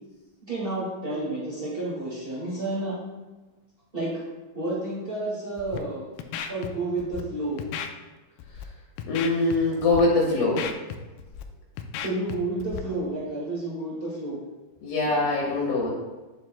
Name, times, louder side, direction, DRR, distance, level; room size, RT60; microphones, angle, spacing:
voice 1, 0.4-2.9 3.9-4.1 4.5-6.1 6.5-7.6 12.0-14.4, right 2 dB, 90° right, -7 dB, 0.5 m, -30 dB
Scratching (performance technique), 5.6-5.8 6.2-6.7 7.0-7.2 7.6-7.9 8.4-8.6 9.0-9.6 9.8-10.0 10.4-11.4 11.8-12.4 12.6-12.8, left 9 dB, 90° left, 1.9 m, -34 dB
voice 2, 9.0-10.6 14.8-15.9, left 3 dB, 70° left, -3 dB, 2.7 m, -23 dB
9.0 x 7.3 x 2.2 m, 1.2 s
omnidirectional pair, 4.5 m